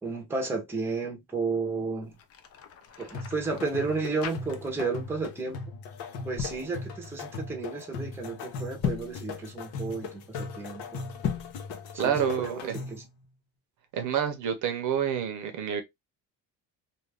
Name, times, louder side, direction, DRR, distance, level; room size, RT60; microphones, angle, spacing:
voice 1, 0.0-2.1 3.0-5.6 6.2-11.0 11.9-13.0, right 4 dB, 5° right, 0.7 m, -32 dB
sound 1, 2.0-5.0 5.3-5.6 6.2-6.7 8.7-9.2 11.1-11.6, left 7 dB, 40° left, 0.5 m, -36 dB
sound 2, 3.1-13.1, left 4 dB, 85° left, 0.8 m, -39 dB
voice 2, 12.0-12.8 13.9-15.8, right 8 dB, 55° right, 0.7 m, -28 dB
2.4 x 2.4 x 3.2 m
cardioid pair, 155°, 36 cm